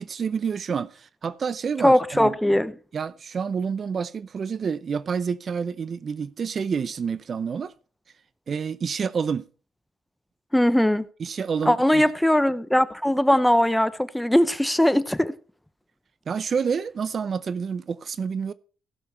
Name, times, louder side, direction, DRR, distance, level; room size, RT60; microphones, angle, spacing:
voice 1, 0.0-2.3 2.9-7.7 8.5-9.5 11.2-12.0 16.3-18.5, right 6 dB, 45° right, 0.5 m, -28 dB
voice 2, 1.8-2.7 10.5-11.1 11.7-15.3, left 1 dB, 5° left, 0.7 m, -20 dB
15.5 x 6.8 x 4.3 m
cardioid pair, 90°, 0 cm